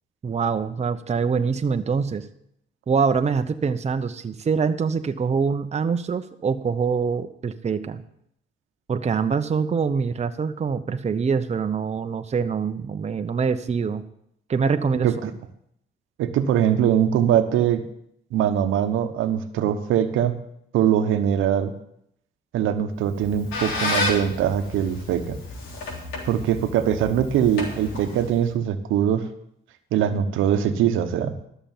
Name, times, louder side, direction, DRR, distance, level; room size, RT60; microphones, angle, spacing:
voice 1, 0.2-2.2 2.9-8.0 8.9-14.0 14.5-15.3, right 5 dB, 35° right, 8 dB, 0.8 m, -24 dB
voice 2, 16.2-17.8 18.3-20.3 20.7-21.7 22.5-25.4 26.2-29.2 29.9-31.3, right 9 dB, 90° right, 8 dB, 1.0 m, -22 dB
Squeak, 23.0-28.5, left 3 dB, 80° left, 3.7 m, -31 dB
13.0 x 6.9 x 7.3 m, 0.73 s
cardioid pair, 90°, 20 cm